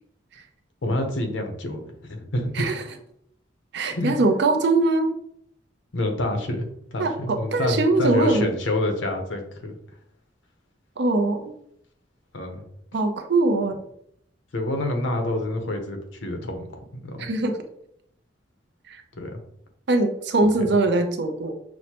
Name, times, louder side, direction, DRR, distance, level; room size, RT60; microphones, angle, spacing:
voice 1, 0.8-1.8 2.1-2.7 3.9-4.2 5.9-9.7 12.3-12.6 14.5-17.3 19.1-19.4 20.7-20.8, left 1 dB, 90° left, 4 dB, 0.8 m, -27 dB
voice 2, 3.7-5.1 7.0-8.5 11.0-11.5 12.9-13.8 17.2-17.6 18.9-19.0 19.9-21.5, right 2 dB, 65° right, 7 dB, 0.5 m, -22 dB
6.2 x 2.1 x 2.8 m, 0.72 s
head